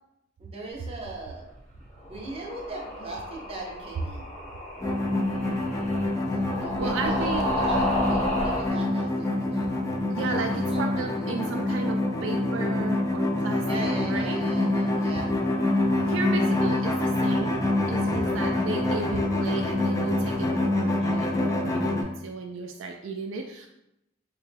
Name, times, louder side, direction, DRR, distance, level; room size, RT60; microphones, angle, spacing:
voice 1, 0.4-1.5 2.0-4.3 6.4-11.1 13.6-15.4, right 2 dB, 30° right, -2 dB, 0.7 m, -39 dB
sound 1, 2.0-8.7, left 1 dB, 35° left, 1.0 m, -32 dB
sound 2, 4.8-22.0, left 1 dB, 15° left, 0.3 m, -26 dB
voice 2, 6.8-7.5 10.1-13.8 14.1-14.4 16.0-23.7, right 4 dB, 70° right, 3 dB, 0.3 m, -34 dB
3.2 x 2.2 x 3.3 m, 0.84 s
head